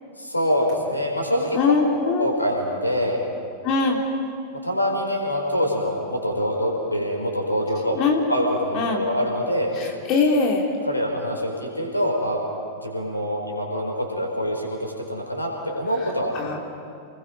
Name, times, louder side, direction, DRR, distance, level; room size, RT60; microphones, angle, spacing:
voice 1, 0.2-1.7 2.2-3.2 4.6-8.0 8.3-9.7 10.8-12.4 12.8-16.3, equal, 85° left, 1 dB, 4.7 m, -25 dB
voice 2, 1.5-2.3 3.6-4.0 7.9-8.2 8.7-9.0 9.7-10.6 16.3-16.6, left 4 dB, 40° left, 0 dB, 2.7 m, -22 dB
30.0 x 21.0 x 5.4 m, 2.4 s
figure-of-eight pair, 90°, 0 cm